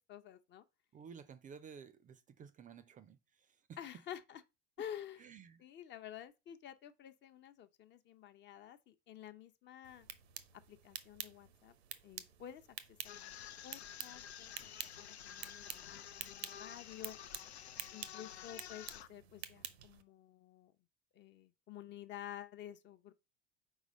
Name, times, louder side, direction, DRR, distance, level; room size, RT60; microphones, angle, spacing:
voice 1, 0.1-0.6 3.8-4.4 4.8-5.2 5.6-10.1 10.7-11.7 12.0-12.6 13.0-13.4 13.6-14.7 15.0-17.2 17.9-20.7 21.1-23.1, left 10 dB, 35° left, 0.7 m, -51 dB
voice 2, 0.9-3.8 5.2-5.6, right 6 dB, 25° right, 0.5 m, -54 dB
sound 1, 9.8-20.0, right 10 dB, 70° right, 0.8 m, -50 dB
sound 2, 13.0-19.1, left 10 dB, 75° left, 0.6 m, -51 dB
4.7 x 4.0 x 5.0 m
figure-of-eight pair, 75°, 33 cm